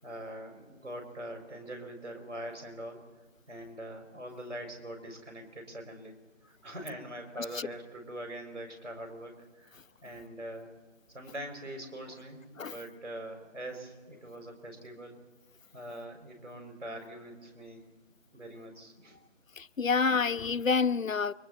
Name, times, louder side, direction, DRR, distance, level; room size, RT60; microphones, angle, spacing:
voice 1, 0.0-3.0 3.5-6.1 6.6-10.7 11.1-15.2 15.7-17.8 18.3-19.2, right 1 dB, 65° right, 5.5 m, -43 dB
voice 2, 19.6-21.3, left 5 dB, 90° left, 0.7 m, -27 dB
29.5 x 23.5 x 4.2 m
figure-of-eight pair, 170°, 38 cm